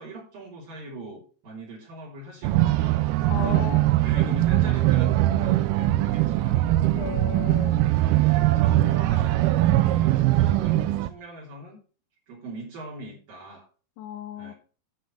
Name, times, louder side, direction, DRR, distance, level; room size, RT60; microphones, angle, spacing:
voice 1, 0.0-6.6 7.6-11.8 12.3-13.7 14.4-14.5, right 1 dB, 55° right, -5 dB, 4.6 m, -40 dB
sound 1, 2.4-11.1, right 15 dB, 85° right, 2.3 m, -21 dB
voice 2, 3.3-3.8 6.9-7.8 14.0-14.5, left 11 dB, 85° left, 7 dB, 3.4 m, -35 dB
11.5 x 5.5 x 6.7 m, 0.38 s
omnidirectional pair, 5.1 m